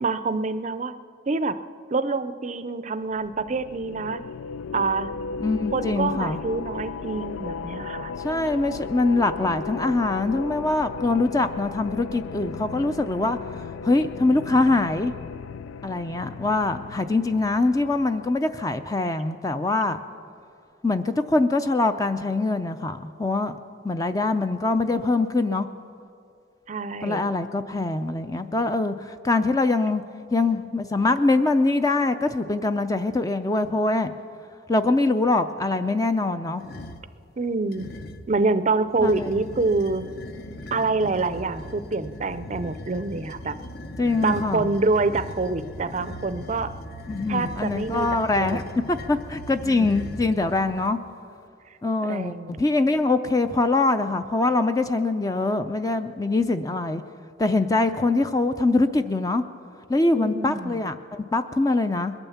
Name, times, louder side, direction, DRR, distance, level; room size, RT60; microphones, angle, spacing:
voice 1, 0.0-0.9 1.3-1.6 1.9-4.2 4.7-5.1 5.7-8.1 26.7-27.3 37.4-37.9 38.3-40.1 40.7-43.5 44.2-46.7 47.3-48.1 48.4-48.6 49.6-49.9 52.1-52.6 60.2-60.8, right 3 dB, 35° right, 12 dB, 0.5 m, -26 dB
sound 1, 3.1-18.5, left 5 dB, 85° left, 0.3 m, -36 dB
voice 2, 5.4-6.4 8.2-13.4 13.8-15.1 15.8-20.0 20.8-23.6 23.8-25.7 27.0-30.0 30.3-34.1 34.7-36.6 39.0-39.4 44.0-44.7 47.1-51.0 51.8-57.0 57.4-59.4 59.9-62.1, left 2 dB, 20° left, 9 dB, 0.4 m, -23 dB
sound 2, 36.6-37.1 37.7-38.3 38.9-50.9, left 1 dB, 50° left, 0.7 m, -39 dB
21.5 x 9.0 x 7.1 m, 2.4 s
head